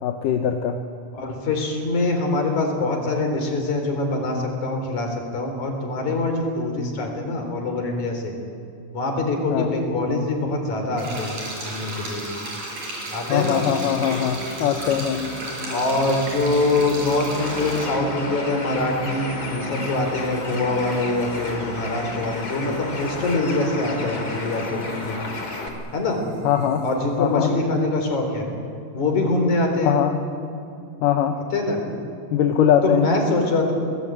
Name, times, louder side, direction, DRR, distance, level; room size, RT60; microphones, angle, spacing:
voice 1, 0.0-0.8 9.5-9.7 13.3-15.2 26.4-26.8 27.2-27.5 29.8-30.1 31.0-31.4 32.3-33.1, left 9 dB, 80° left, 5 dB, 2.6 m, -21 dB
voice 2, 1.1-8.3 8.9-12.2 13.1-13.6 15.7-25.2 25.9-26.2 26.8-28.5 28.9-30.0 31.5-31.8 32.8-33.7, left 2 dB, 60° left, 3 dB, 5.1 m, -24 dB
sound 1, 11.0-17.9, right 1 dB, 55° right, 7.3 m, -33 dB
sound 2, 13.9-27.4, right 2 dB, 85° right, 4.5 m, -39 dB
Bird, 17.4-25.7, left 2 dB, 30° left, 3.0 m, -32 dB
24.5 x 19.5 x 8.9 m, 2.6 s
omnidirectional pair, 3.9 m